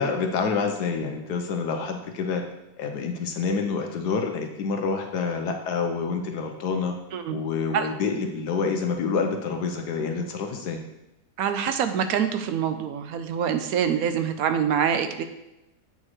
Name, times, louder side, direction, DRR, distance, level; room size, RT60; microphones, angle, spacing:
voice 1, 0.0-2.4 2.8-6.9 7.3-10.8, left 5 dB, 80° left, 4 dB, 1.4 m, -27 dB
voice 2, 11.4-15.2, right 8 dB, 70° right, 8 dB, 1.0 m, -25 dB
8.6 x 6.6 x 3.1 m, 0.93 s
omnidirectional pair, 1.7 m